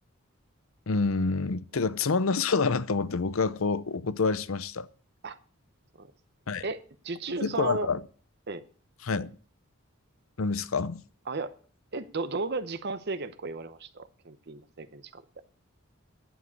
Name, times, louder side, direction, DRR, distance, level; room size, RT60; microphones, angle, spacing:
voice 1, 0.9-4.9 6.5-6.6 7.3-8.0 9.0-9.4 10.4-11.0, left 4 dB, 70° left, 0.7 m, -27 dB
voice 2, 6.6-7.9 8.5-8.6 11.3-11.5 11.9-15.4, right 3 dB, 50° right, 0.8 m, -34 dB
11.0 x 7.4 x 8.1 m
head